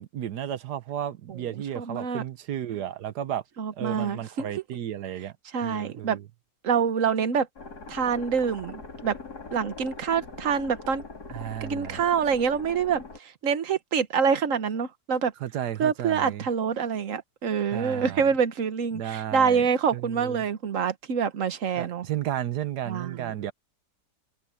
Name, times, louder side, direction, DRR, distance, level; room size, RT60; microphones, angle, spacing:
voice 1, 0.0-3.4 3.7-5.3 5.6-6.2 11.3-12.0 15.4-16.5 17.7-18.3 18.9-19.6 19.9-20.4 21.8-23.5, right 11 dB, 70° right, 1.4 m, -33 dB
voice 2, 1.7-2.2 3.6-4.5 5.5-6.2 6.6-7.5 7.9-9.1 9.5-11.0 11.6-15.3 15.8-22.1 22.9-23.3, right 6 dB, 50° right, 1.4 m, -26 dB
sound 1, 7.6-13.2, left 3 dB, 65° left, 3.8 m, -42 dB
open air
omnidirectional pair, 1.8 m